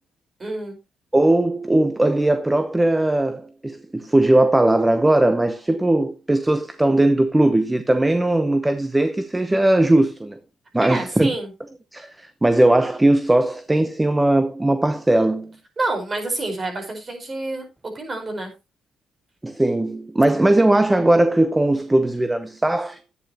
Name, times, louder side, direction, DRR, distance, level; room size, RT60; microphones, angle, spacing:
voice 1, 0.4-0.8 10.8-11.5 15.8-17.6 17.9-18.5, right 2 dB, 30° right, 4.9 m, -28 dB
voice 2, 1.1-10.4 10.7-11.3 11.9-15.5 19.4-23.0, right 1 dB, 10° right, 0.9 m, -19 dB
11.5 x 9.5 x 3.0 m
cardioid pair, 90°, 0 cm